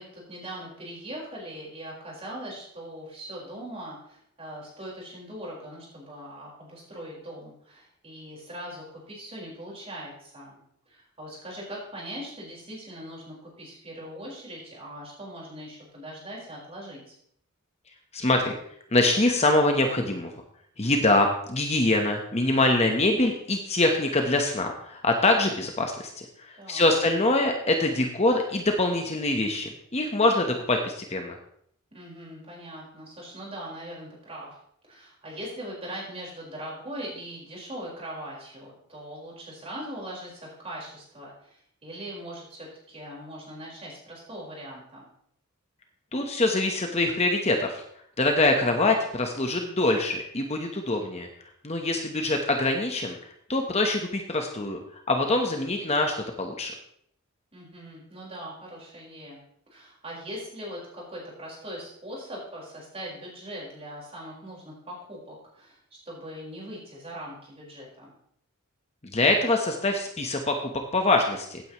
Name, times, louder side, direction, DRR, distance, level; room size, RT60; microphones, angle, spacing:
voice 1, 0.0-10.6 10.9-17.1 26.6-26.9 31.9-34.5 34.8-45.1 48.6-48.9 57.5-59.4 59.7-68.1, equal, 30° right, -4 dB, 4.9 m, -41 dB
voice 2, 18.1-18.6 18.9-20.3 20.8-31.4 46.1-47.8 48.2-51.3 51.6-53.2 53.5-56.7 69.1-71.6, left 2 dB, 30° left, 3 dB, 1.1 m, -24 dB
15.5 x 9.2 x 3.1 m, 0.68 s
head